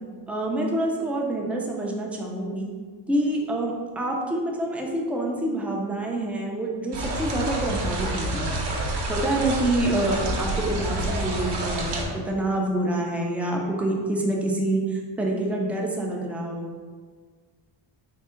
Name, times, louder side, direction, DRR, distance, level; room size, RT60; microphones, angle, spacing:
voice 1, 0.3-2.7 3.1-8.6 9.1-16.8, right 1 dB, 5° right, -1 dB, 0.3 m, -27 dB
sound 1, 6.9-12.0, right 1 dB, 60° right, 0.8 m, -28 dB
3.7 x 2.1 x 3.6 m, 1.5 s
cardioid pair, 110°, 44 cm